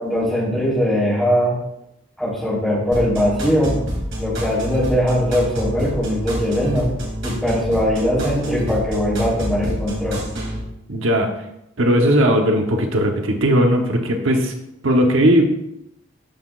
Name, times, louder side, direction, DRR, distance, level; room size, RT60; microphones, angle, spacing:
voice 1, 0.0-1.5 2.2-3.7 4.2-6.9 7.2-10.2, equal, ahead, -6 dB, 3.3 m, -20 dB
sound 1, 2.9-10.6, equal, 65° right, 2.7 m, -27 dB
voice 2, 10.9-11.3 11.8-14.5 14.8-15.8, equal, 85° right, 3 dB, 1.0 m, -17 dB
13.5 x 6.0 x 2.4 m, 0.83 s
head